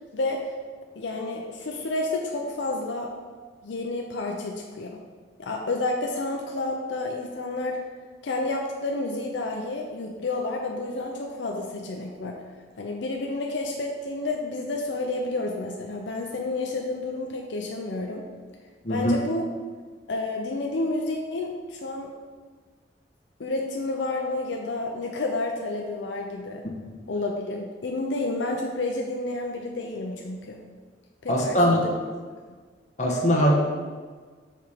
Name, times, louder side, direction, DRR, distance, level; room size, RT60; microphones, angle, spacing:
voice 1, 1.0-3.1 3.6-5.0 5.4-7.8 8.2-12.4 12.8-18.2 18.9-19.5 20.1-22.1 23.4-26.6 27.1-30.6 31.2-31.9, left 2 dB, 75° left, 1 dB, 0.6 m, -30 dB
voice 2, 31.3-31.9 33.0-33.6, equal, 40° left, -2 dB, 1.2 m, -21 dB
5.9 x 4.3 x 5.0 m, 1.5 s
head